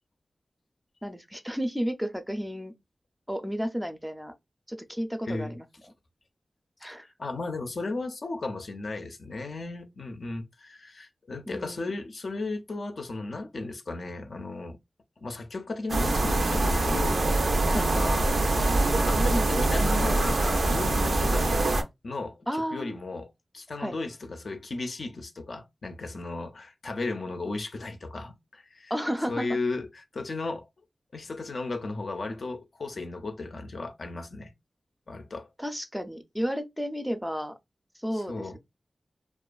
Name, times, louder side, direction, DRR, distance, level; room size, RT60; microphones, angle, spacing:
voice 1, 1.0-2.7 3.3-4.3 4.7-5.7 6.8-7.1 11.5-12.0 17.7-17.9 22.5-23.0 23.8-24.0 28.9-29.5 35.6-37.5 38.0-38.6, equal, 5° right, 0.4 m, -32 dB
voice 2, 7.0-14.8 15.2-18.3 19.1-21.6 22.0-28.9 29.3-30.7 31.1-34.5 35.1-35.5 38.1-38.6, left 3 dB, 70° left, 0.4 m, -35 dB
sound 1, 15.9-21.8, right 2 dB, 85° right, 0.5 m, -24 dB
2.5 x 2.3 x 2.3 m
cardioid pair, 60°, 0 cm